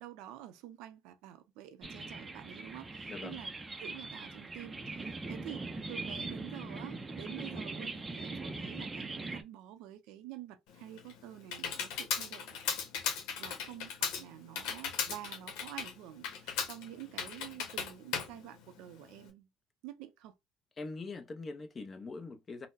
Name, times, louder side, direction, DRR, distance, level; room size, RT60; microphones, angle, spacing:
voice 1, 0.0-12.5 13.4-19.5 19.8-20.3, right 12 dB, 80° right, 0.6 m, -48 dB
sound 1, 1.8-9.4, right 3 dB, 15° right, 0.5 m, -41 dB
voice 2, 3.1-3.4 20.8-22.7, left 3 dB, 25° left, 0.6 m, -42 dB
Computer keyboard, 10.7-19.3, left 7 dB, 80° left, 0.9 m, -38 dB
3.9 x 2.1 x 2.5 m
cardioid pair, 130°, 0 cm